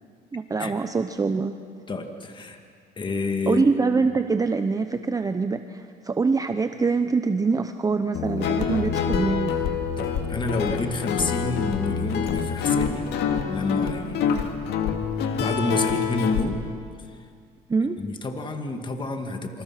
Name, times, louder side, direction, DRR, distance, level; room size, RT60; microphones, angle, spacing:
voice 1, 0.3-1.5 3.5-9.6 17.7-18.1, right 4 dB, 20° right, 8 dB, 0.9 m, -24 dB
voice 2, 1.9-2.6 3.0-3.6 10.0-13.1 13.5-14.4 15.3-16.7 17.1-17.2 18.0-19.6, left 3 dB, 30° left, 5 dB, 2.2 m, -29 dB
Guitar, 8.1-16.4, left 6 dB, 80° left, 2.2 m, -26 dB
28.0 x 26.5 x 6.0 m, 2.1 s
cardioid pair, 110°, 17 cm